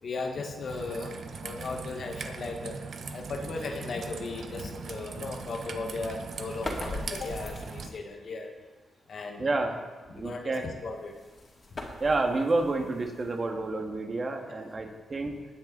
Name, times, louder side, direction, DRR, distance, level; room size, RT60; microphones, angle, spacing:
voice 1, 0.0-1.1 1.4-2.8 3.1-8.5 9.1-9.5 10.2-11.1 14.6-14.7, left 3 dB, 60° left, 3 dB, 1.6 m, -36 dB
Raindrop / Trickle dribble, 0.7-7.9, right 5 dB, 65° right, 1.0 m, -40 dB
sound 1, 6.4-8.1 10.8-13.7, left 2 dB, 40° left, 2.7 m, -41 dB
voice 2, 9.4-9.8 10.1-10.7 12.0-15.4, right 2 dB, 40° right, 3 dB, 1.9 m, -29 dB
19.5 x 6.6 x 4.0 m, 1.3 s
cardioid pair, 65°, 0 cm